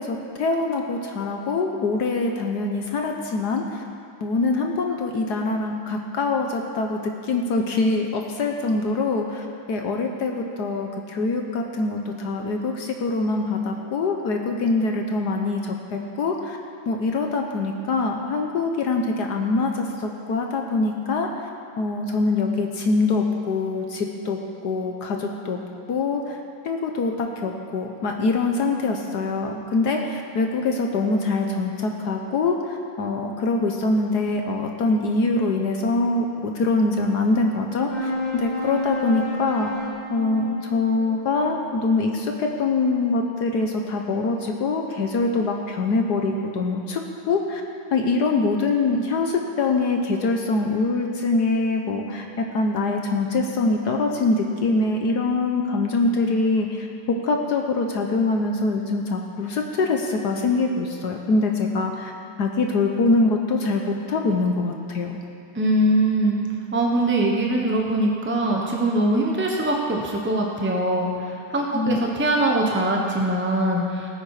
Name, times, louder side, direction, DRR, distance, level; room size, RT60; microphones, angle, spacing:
voice 1, 0.0-3.8 4.2-16.6 16.9-21.3 21.8-25.6 25.9-26.4 26.6-39.7 40.1-47.0 47.3-47.6 47.9-62.1 62.4-65.2 71.7-72.0, left 3 dB, 60° left, 2 dB, 1.3 m, -24 dB
sound 1, 37.9-42.7, left 1 dB, 20° left, 2.6 m, -32 dB
voice 2, 65.6-66.4 66.7-71.1 71.5-74.1, right 1 dB, 15° right, 0 dB, 0.4 m, -22 dB
18.5 x 8.8 x 4.9 m, 2.6 s
omnidirectional pair, 2.4 m